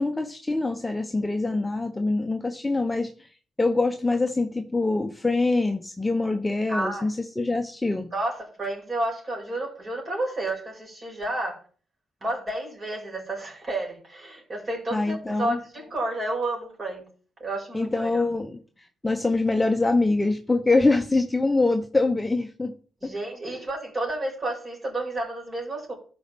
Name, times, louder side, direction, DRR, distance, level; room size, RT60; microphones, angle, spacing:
voice 1, 0.0-3.1 3.6-8.1 14.9-15.6 17.7-18.6 19.0-22.7 23.0-23.1, left 2 dB, 15° left, 5 dB, 0.9 m, -24 dB
voice 2, 6.7-7.1 8.1-11.6 12.2-17.0 17.4-18.2 23.0-25.9, right 2 dB, 30° right, -1 dB, 5.1 m, -31 dB
12.5 x 5.2 x 3.6 m, 0.42 s
cardioid pair, 90°, 0 cm